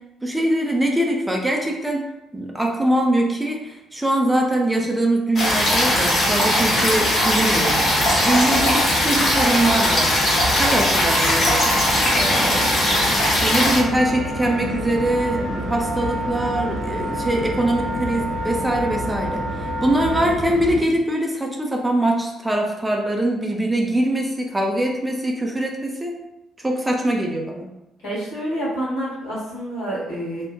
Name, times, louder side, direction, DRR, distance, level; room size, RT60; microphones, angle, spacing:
voice 1, 0.2-2.0 2.3-10.1 10.6-11.7 12.1-12.7 13.2-26.1 26.6-27.7, right 1 dB, 15° right, 1 dB, 0.4 m, -23 dB
sound 1, 5.4-13.8, left 1 dB, 50° left, 0.7 m, -19 dB
sound 2, 5.4-20.8, right 1 dB, 80° right, 0.8 m, -31 dB
Wind instrument woodwind instrument, 8.0-20.2, left 1 dB, 25° left, 0.9 m, -32 dB
voice 2, 28.0-30.5, right 1 dB, 65° left, -8 dB, 1.1 m, -28 dB
2.6 x 2.1 x 2.4 m, 0.92 s
figure-of-eight pair, 45°, 0 cm